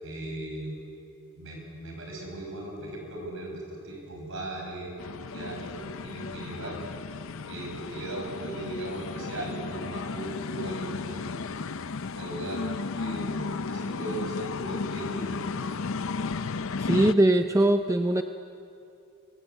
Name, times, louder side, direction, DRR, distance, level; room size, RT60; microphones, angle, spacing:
voice 1, 0.0-0.8 1.3-4.9 5.3-6.8 7.5-11.4 12.2-12.6 13.0-15.5, right 1 dB, 60° right, 0 dB, 5.7 m, -37 dB
sound 1, 5.0-17.1, left 4 dB, 65° left, 0.6 m, -34 dB
voice 2, 16.8-18.2, right 1 dB, 15° right, 7 dB, 0.5 m, -21 dB
24.0 x 16.5 x 8.2 m, 2.7 s
head